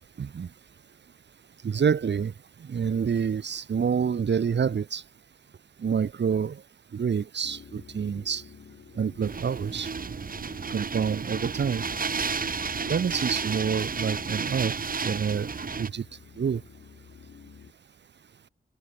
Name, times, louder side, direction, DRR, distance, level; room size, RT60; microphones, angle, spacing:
voice 1, 0.2-0.5 1.6-2.3 2.6-5.0 5.8-6.6 6.9-8.4 8.9-9.9 10.7-11.9 12.8-14.8 15.0-16.0 16.4-16.6, right 7 dB, 70° right, 1.6 m, -27 dB
sound 1, 7.4-17.7, left 7 dB, 85° left, 2.8 m, -50 dB
sound 2, 9.2-15.9, right 5 dB, 50° right, 1.5 m, -32 dB
wide cardioid pair, 95°, 18 cm